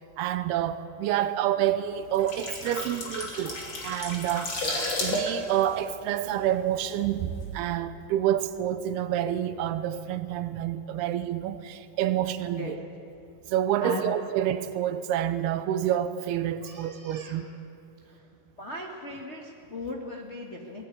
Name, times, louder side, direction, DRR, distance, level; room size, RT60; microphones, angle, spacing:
voice 1, 0.0-3.6 3.8-4.6 5.0-12.8 13.5-17.5, right 11 dB, 85° right, 2.8 m, -28 dB
sound 1, 2.0-6.8 7.1-7.3, left 1 dB, 35° left, 3.1 m, -32 dB
voice 2, 13.8-14.1 16.6-17.4 18.0-18.2 18.6-20.9, left 3 dB, 60° left, 0.7 m, -38 dB
19.5 x 15.5 x 9.5 m
omnidirectional pair, 4.6 m